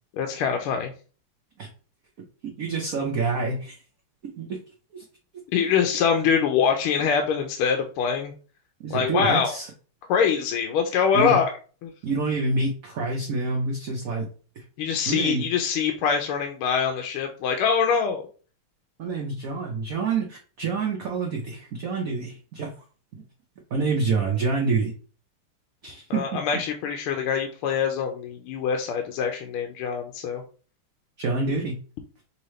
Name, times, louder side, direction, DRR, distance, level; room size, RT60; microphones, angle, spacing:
voice 1, 0.1-0.9 5.5-8.3 8.9-9.5 10.1-11.5 11.8-11.9 14.8-18.2 26.1-30.4, left 6 dB, 85° left, 4 dB, 1.5 m, -24 dB
voice 2, 2.4-3.8 4.2-4.6 4.9-5.0 8.8-9.7 11.1-11.4 12.0-14.3 14.6-14.7 15.1-15.5 19.0-22.7 23.7-24.9 25.8-26.4 31.2-31.8, right 4 dB, 60° right, 0 dB, 0.9 m, -27 dB
5.5 x 2.9 x 3.1 m, 0.39 s
omnidirectional pair, 2.4 m